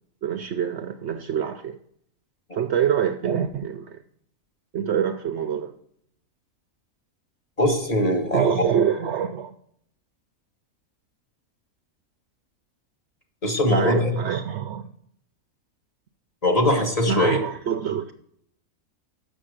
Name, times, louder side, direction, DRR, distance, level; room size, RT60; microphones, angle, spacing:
voice 1, 0.2-1.8 2.5-4.0 4.7-5.7 8.3-9.5 13.7-14.9 17.1-18.1, right 8 dB, 65° right, 0.7 m, -25 dB
voice 2, 7.6-8.6 13.4-14.1 16.4-17.4, left 1 dB, 25° left, 1.5 m, -21 dB
7.1 x 6.5 x 6.4 m
omnidirectional pair, 1.5 m